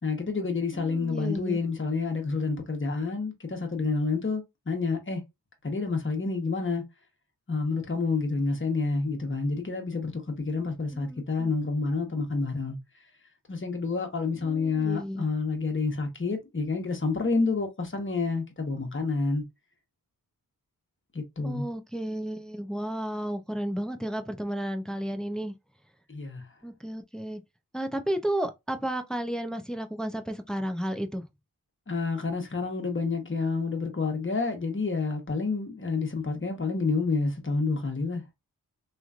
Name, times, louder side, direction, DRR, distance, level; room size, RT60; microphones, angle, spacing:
voice 1, 0.0-5.2 5.6-6.8 7.5-12.8 13.5-19.4 21.1-21.7 26.1-26.4 31.9-38.2, left 4 dB, 35° left, 1.1 m, -29 dB
voice 2, 0.7-1.6 10.9-11.5 14.4-15.2 21.4-25.5 26.6-27.4 27.7-31.2, right 1 dB, ahead, 0.5 m, -33 dB
3.0 x 2.5 x 2.4 m
wide cardioid pair, 70°, 35 cm